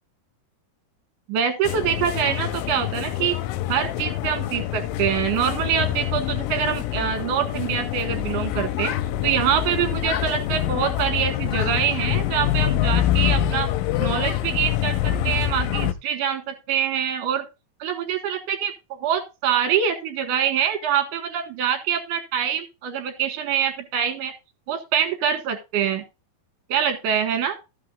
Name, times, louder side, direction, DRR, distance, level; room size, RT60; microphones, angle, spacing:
voice 1, 1.3-3.4 3.7-8.9 9.2-13.7 14.0-17.4 17.8-24.3 24.7-26.0 26.7-27.5, right 8 dB, 65° right, 7 dB, 2.5 m, -25 dB
sound 1, 1.6-15.9, left 12 dB, 80° left, 2.2 m, -25 dB
14.0 x 5.8 x 3.7 m, 0.27 s
omnidirectional pair, 4.6 m